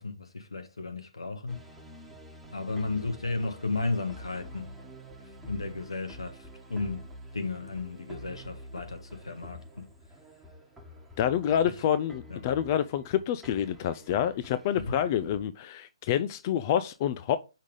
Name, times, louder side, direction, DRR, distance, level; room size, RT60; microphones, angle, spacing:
voice 1, 0.0-1.6 2.5-4.7 5.4-7.1 7.3-9.9 11.6-11.7 12.3-12.5 14.8-15.0, left 3 dB, 80° left, 1.2 m, -34 dB
sound 1, 1.5-15.4, equal, 5° right, 1.1 m, -48 dB
voice 2, 11.2-17.4, left 10 dB, 35° left, 0.3 m, -27 dB
5.5 x 3.6 x 5.1 m
figure-of-eight pair, 135°, 3 cm